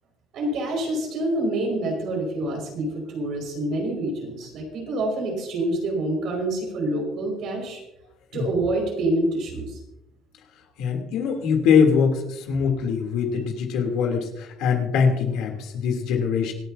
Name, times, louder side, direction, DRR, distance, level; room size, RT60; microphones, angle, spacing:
voice 1, 0.3-7.8 8.3-9.8, right 1 dB, 55° right, 0 dB, 5.5 m, -27 dB
voice 2, 10.8-16.5, left 6 dB, 75° left, 2 dB, 3.2 m, -22 dB
26.0 x 9.1 x 2.8 m, 0.87 s
cardioid pair, 150°, 0 cm